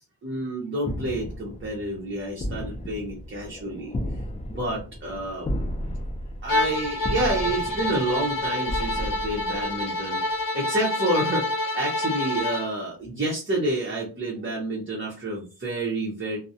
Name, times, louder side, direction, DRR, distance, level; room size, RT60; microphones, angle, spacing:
voice 1, 0.2-3.9 4.5-5.5 6.4-16.4, right 1 dB, 30° right, -3 dB, 0.7 m, -29 dB
sound 1, 0.8-10.1, equal, 20° left, 0.3 m, -34 dB
Bowed string instrument, 6.5-12.7, left 1 dB, 55° left, 0.7 m, -27 dB
2.3 x 2.0 x 2.7 m, 0.34 s
cardioid pair, 80°, 40 cm